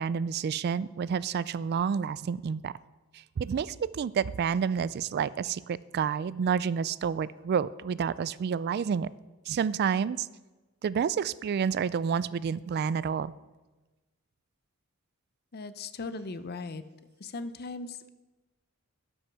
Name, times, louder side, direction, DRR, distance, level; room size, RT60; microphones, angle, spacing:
voice 1, 0.0-2.7 3.4-9.1 9.5-10.3 10.8-13.3, right 7 dB, 50° right, 18 dB, 0.3 m, -29 dB
voice 2, 15.5-16.8 17.2-18.1, left 3 dB, 50° left, 13 dB, 0.6 m, -38 dB
12.5 x 6.3 x 6.2 m, 1.2 s
head